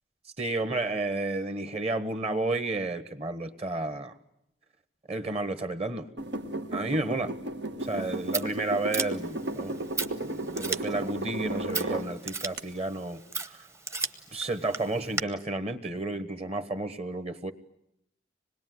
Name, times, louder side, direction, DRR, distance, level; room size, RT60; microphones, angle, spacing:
voice 1, 0.4-4.1 5.1-6.1 6.7-7.3 7.8-9.8 10.2-13.7 14.3-17.5, right 2 dB, 35° right, 11 dB, 1.4 m, -32 dB
sound 1, 6.2-12.1 12.6-12.7, right 1 dB, 85° right, 1.6 m, -34 dB
Scissors, 7.8-15.2, right 4 dB, 15° right, 0.9 m, -37 dB
26.0 x 21.0 x 9.5 m, 0.80 s
head